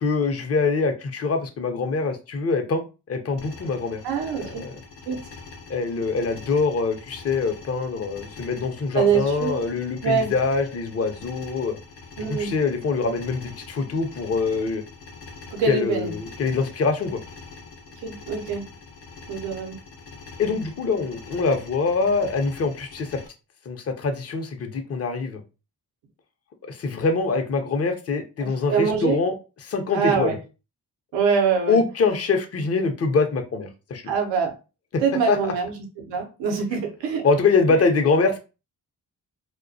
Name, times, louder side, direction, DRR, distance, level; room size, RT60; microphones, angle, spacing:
voice 1, 0.0-2.8 3.1-4.0 4.4-4.7 5.7-11.8 12.2-14.8 15.6-17.2 20.4-23.2 23.7-25.4 26.7-29.3 29.6-30.4 31.7-34.1 35.3-35.5 37.2-38.4, left 4 dB, 35° left, 0.6 m, -24 dB
sound 1, 3.4-23.3, left 4 dB, 70° left, 0.7 m, -43 dB
voice 2, 4.0-4.7 5.1-5.2 8.9-9.5 10.0-10.3 12.2-12.5 15.5-16.1 18.0-18.6 19.3-19.8 28.4-29.2 29.9-30.4 31.1-31.8 34.1-34.5 35.0-37.3, right 6 dB, 85° right, 0.6 m, -24 dB
2.3 x 2.2 x 2.5 m
supercardioid pair, 45°, 42 cm